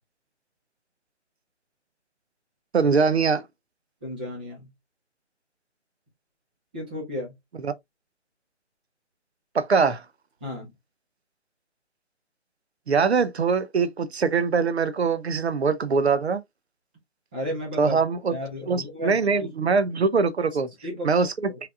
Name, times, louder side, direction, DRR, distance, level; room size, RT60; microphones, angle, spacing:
voice 1, 2.7-3.4 7.6-7.7 9.5-10.0 12.9-16.4 17.8-18.3 18.7-20.7 21.0-21.5, right 5 dB, 60° right, 0.8 m, -22 dB
voice 2, 4.0-4.7 6.7-7.3 10.4-10.7 17.3-18.0 18.3-19.5 20.8-21.6, left 1 dB, 10° right, 0.7 m, -34 dB
5.9 x 3.4 x 2.3 m
figure-of-eight pair, 155°, 36 cm